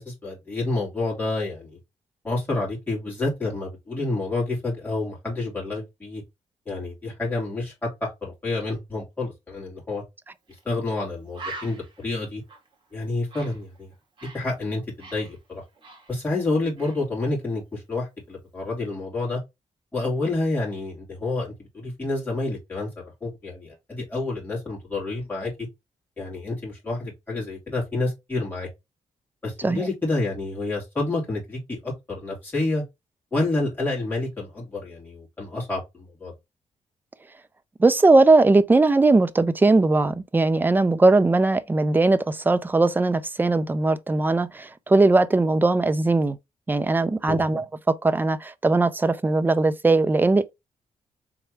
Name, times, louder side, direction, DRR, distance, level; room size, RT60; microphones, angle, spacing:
voice 1, 0.0-1.8 2.2-6.2 6.6-10.0 10.6-12.4 12.9-13.9 14.3-15.6 16.1-19.4 19.9-22.9 23.2-25.7 26.2-28.7 29.4-32.8 33.3-36.3 47.3-47.4, left 2 dB, 15° left, 3.3 m, -29 dB
Bird, 10.5-10.6 11.0-11.1 11.3-14.5 14.8-16.5 16.8-17.1, right 3 dB, 40° right, 1.9 m, -42 dB
voice 2, 37.8-46.4 46.7-50.5, right 3 dB, 15° right, 0.4 m, -19 dB
4.4 x 3.5 x 3.1 m
cardioid pair, 115°, 12 cm